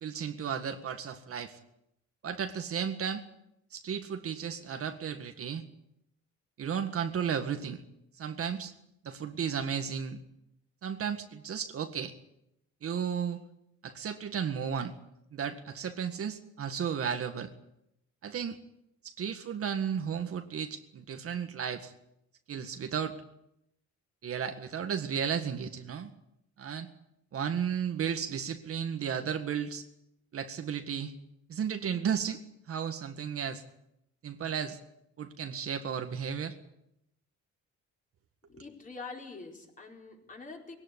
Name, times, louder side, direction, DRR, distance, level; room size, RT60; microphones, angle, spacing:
voice 1, 0.0-1.6 2.2-3.2 3.7-5.6 6.6-7.8 8.2-8.7 9.0-10.2 10.8-12.1 12.8-13.4 13.8-14.9 15.3-17.5 18.2-18.6 19.0-21.9 22.5-23.2 24.2-26.1 26.6-26.9 27.3-29.9 30.3-31.1 31.5-32.4 32.7-33.6 34.2-34.8 35.2-36.6, right 7 dB, 50° right, 7 dB, 1.8 m, -34 dB
voice 2, 38.5-40.8, left 4 dB, 25° left, 1 dB, 4.6 m, -45 dB
21.5 x 17.5 x 9.9 m, 0.82 s
cardioid pair, 145°, 29 cm